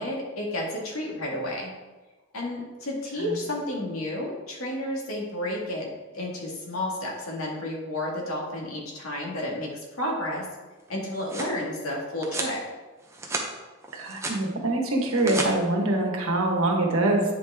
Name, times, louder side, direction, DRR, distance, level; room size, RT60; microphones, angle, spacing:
voice 1, 0.0-1.7 2.3-5.9 6.1-10.5 10.9-12.6, left 1 dB, 80° left, -2 dB, 1.9 m, -31 dB
sound 1, 10.9-11.6 12.2-12.6 13.0-13.5 13.8-14.4 15.0-15.5, right 2 dB, 15° right, 0.8 m, -33 dB
voice 2, 13.9-17.2, right 2 dB, 80° right, 0 dB, 1.5 m, -24 dB
9.0 x 5.2 x 3.6 m, 1.2 s
head